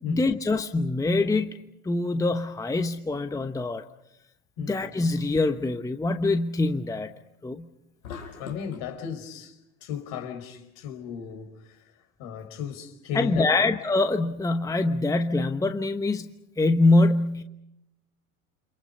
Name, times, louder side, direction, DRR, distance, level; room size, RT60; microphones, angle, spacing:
voice 1, 0.1-1.5 1.8-3.8 4.6-7.1 7.4-7.7 13.1-16.3 16.6-17.4, left 2 dB, 10° left, 1.1 m, -24 dB
voice 2, 4.6-4.9 8.4-13.7, left 8 dB, 50° left, 5.3 m, -36 dB
sound 1, 8.0-8.9, left 6 dB, 80° left, 5.7 m, -40 dB
29.5 x 26.0 x 5.5 m
hypercardioid pair, 90°, 43 cm